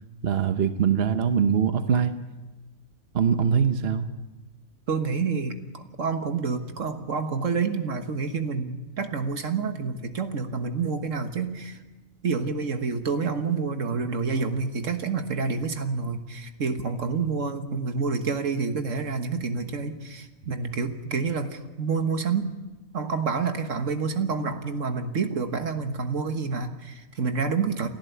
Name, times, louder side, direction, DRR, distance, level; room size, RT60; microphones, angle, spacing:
voice 1, 0.2-2.1 3.1-4.0, right 7 dB, 50° right, 9 dB, 1.1 m, -22 dB
voice 2, 4.9-11.8 12.2-22.5 22.9-27.9, right 5 dB, 70° right, 7 dB, 1.7 m, -28 dB
29.0 x 12.0 x 8.2 m, 1.2 s
omnidirectional pair, 1.4 m